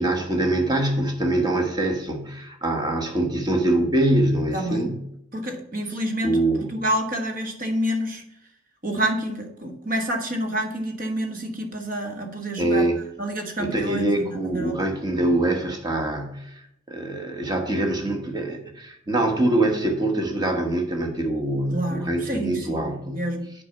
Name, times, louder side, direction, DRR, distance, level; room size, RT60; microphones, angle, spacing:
voice 1, 0.0-5.0 6.2-6.8 12.6-13.0 13.6-23.2, right 1 dB, 20° right, 3 dB, 1.2 m, -24 dB
voice 2, 4.5-4.9 5.3-8.2 8.8-12.9 13.2-14.7 21.7-23.5, right 1 dB, 40° right, 3 dB, 1.3 m, -28 dB
8.3 x 4.9 x 5.5 m, 0.78 s
head